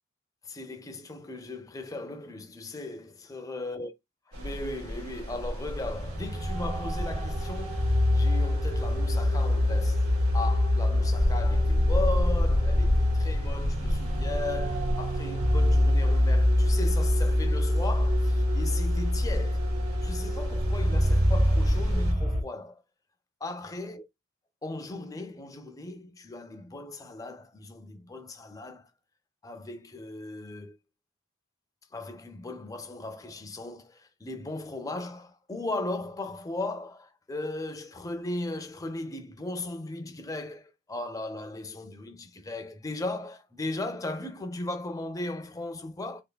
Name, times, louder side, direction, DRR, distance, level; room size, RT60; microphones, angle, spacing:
voice 1, 0.4-3.9 4.3-19.6 20.0-22.8 23.4-24.0 24.6-28.9 29.4-30.7 31.9-46.2, left 2 dB, 15° left, 0.4 m, -37 dB
sound 1, 4.3-22.1, left 1 dB, 85° right, 1.8 m, -33 dB
sound 2, 5.9-22.4, left 1 dB, 30° right, 0.9 m, -25 dB
3.3 x 3.1 x 2.2 m
head